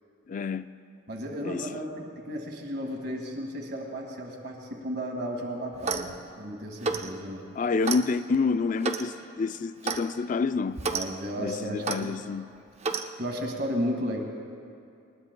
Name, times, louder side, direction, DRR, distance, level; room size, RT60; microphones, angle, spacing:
voice 1, 0.3-0.7 1.4-1.7 7.6-10.8 11.4-12.5, left 4 dB, 35° left, 0.3 m, -28 dB
voice 2, 1.1-7.5 10.9-12.1 13.2-14.2, equal, 50° right, 1.8 m, -34 dB
Clock, 5.7-6.1 6.8-7.1 7.8-8.0 8.8-9.1 9.8-10.0 10.8-11.1 11.8-12.0 12.8-13.1, right 4 dB, 30° right, 0.5 m, -30 dB
20.5 x 20.0 x 2.2 m
head